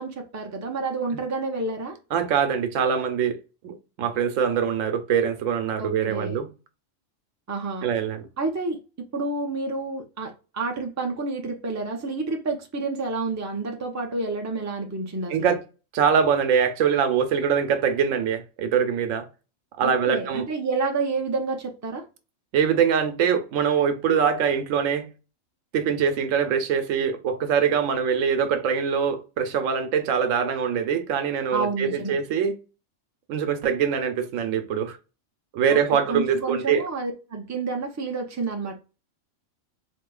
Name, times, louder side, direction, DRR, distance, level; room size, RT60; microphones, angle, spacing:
voice 1, 0.0-2.0 5.8-6.4 7.5-7.9 8.4-15.5 19.8-22.0 31.5-32.2 35.7-38.8, right 3 dB, 25° right, 0.4 m, -29 dB
voice 2, 2.1-3.4 3.6-6.5 7.8-8.3 15.3-15.6 15.9-19.3 19.8-20.4 22.5-25.1 25.7-32.5 33.3-35.0 35.5-36.9, right 7 dB, 80° right, 1.1 m, -23 dB
4.2 x 2.7 x 2.3 m
omnidirectional pair, 1.3 m